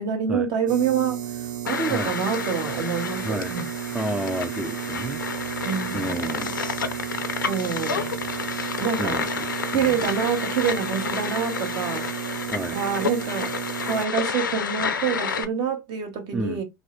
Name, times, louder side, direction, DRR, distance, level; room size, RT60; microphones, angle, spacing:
voice 1, 0.0-3.7 5.6-6.3 7.5-8.0 8.8-9.2 9.7-12.1 12.7-13.6 13.8-16.6, right 7 dB, 45° right, 1.1 m, -27 dB
sound 1, 0.7-14.1, right 11 dB, 75° right, 0.4 m, -33 dB
sound 2, 1.7-15.4, left 6 dB, 85° left, 0.5 m, -30 dB
voice 2, 3.9-5.2 5.9-6.7 9.0-10.1 12.5-12.8 16.3-16.6, right 2 dB, 10° right, 0.4 m, -31 dB
3.0 x 2.6 x 3.1 m
figure-of-eight pair, 80°, 10 cm